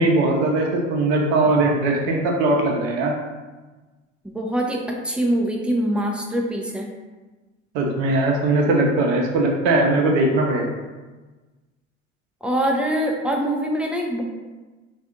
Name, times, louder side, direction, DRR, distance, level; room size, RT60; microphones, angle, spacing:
voice 1, 0.0-3.1 7.7-10.7, right 2 dB, 55° right, 0 dB, 0.7 m, -20 dB
voice 2, 4.2-6.9 12.4-14.2, right 1 dB, 5° right, 0 dB, 0.5 m, -23 dB
3.4 x 2.4 x 3.6 m, 1.2 s
figure-of-eight pair, 60°, 38 cm